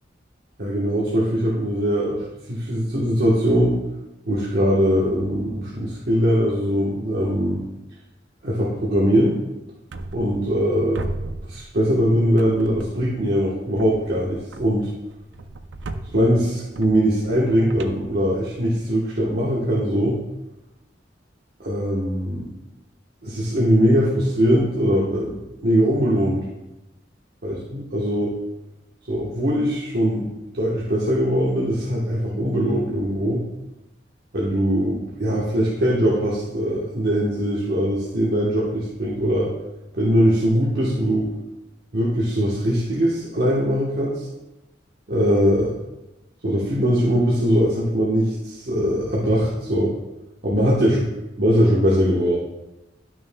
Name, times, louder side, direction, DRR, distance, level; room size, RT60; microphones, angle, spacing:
voice 1, 0.6-3.8 4.3-7.6 8.4-9.4 10.1-11.1 11.5-14.9 16.1-20.2 21.6-22.5 23.2-25.3 25.6-26.4 27.4-28.3 29.1-30.3 30.5-33.4 34.3-39.5 39.9-41.3 41.9-44.3 45.1-45.7 46.4-49.9 50.4-51.1 51.4-52.4, equal, 60° right, -6 dB, 1.2 m, -21 dB
sound 1, 9.9-10.7 10.9-12.0 12.4-13.2 13.8-18.8, right 2 dB, 80° right, 0.5 m, -37 dB
11.0 x 6.3 x 2.3 m, 0.98 s
head